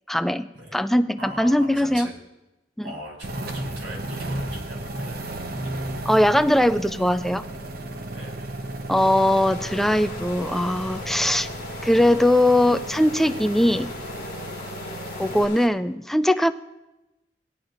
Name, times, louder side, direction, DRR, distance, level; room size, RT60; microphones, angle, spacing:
voice 1, 0.1-2.1 2.8-2.9 6.1-7.4 8.9-11.5 11.8-13.9 15.2-16.5, left 1 dB, ahead, 10 dB, 0.3 m, -20 dB
voice 2, 1.2-2.1 2.8-5.5 8.1-8.6, right 1 dB, 90° right, -2 dB, 3.3 m, -40 dB
sound 1, 3.2-15.4, right 1 dB, 60° right, 0.9 m, -34 dB
sound 2, 9.0-15.7, left 3 dB, 55° left, 1.6 m, -38 dB
17.5 x 10.5 x 2.5 m, 0.98 s
head